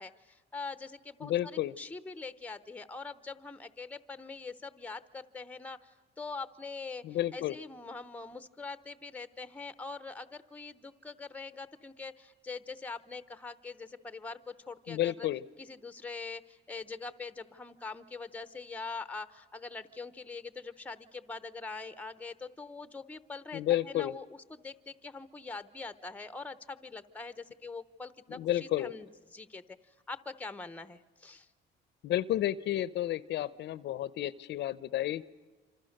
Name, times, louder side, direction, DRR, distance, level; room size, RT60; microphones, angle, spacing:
voice 1, 0.0-7.0 7.3-15.3 15.6-29.6 30.1-31.5, left 4 dB, 10° left, 13 dB, 0.8 m, -43 dB
voice 2, 1.2-1.7 7.0-7.5 14.9-15.4 23.5-24.1 28.3-28.9 32.0-35.2, left 13 dB, 70° left, 19 dB, 0.7 m, -31 dB
27.5 x 26.5 x 6.6 m, 1.3 s
cardioid pair, 160°, 19 cm